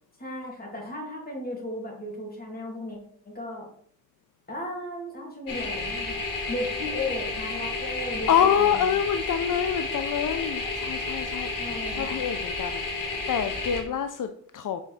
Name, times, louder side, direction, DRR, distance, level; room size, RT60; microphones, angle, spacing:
voice 1, 0.2-3.0 3.2-3.7 4.5-6.2 6.5-8.9 11.6-12.2, left 1 dB, 30° left, 2.7 m, -35 dB
sound 1, 5.5-13.8, left 3 dB, 85° left, 2.3 m, -31 dB
voice 2, 8.3-11.5 12.0-12.8 13.3-14.8, left 8 dB, 70° left, 0.6 m, -26 dB
5.6 x 4.4 x 6.3 m
wide cardioid pair, 130°, 32 cm